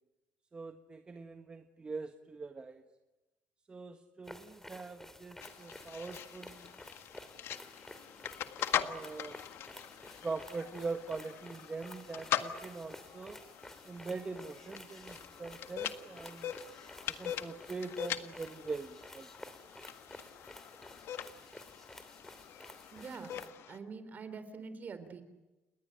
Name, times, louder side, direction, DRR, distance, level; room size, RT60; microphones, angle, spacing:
voice 1, 0.5-2.8 3.7-6.8 8.8-9.4 10.2-13.4 13.8-16.5 17.1-19.3, right 4 dB, 25° right, 7 dB, 1.5 m, -42 dB
sound 1, 4.2-23.5, left 1 dB, 10° left, 3.0 m, -52 dB
sound 2, 5.4-23.8, left 10 dB, 65° left, 1.7 m, -42 dB
voice 2, 22.9-23.3 23.7-25.2, right 5 dB, 40° right, 11 dB, 3.7 m, -45 dB
29.5 x 20.5 x 9.0 m, 1.1 s
cardioid pair, 120°, 5 cm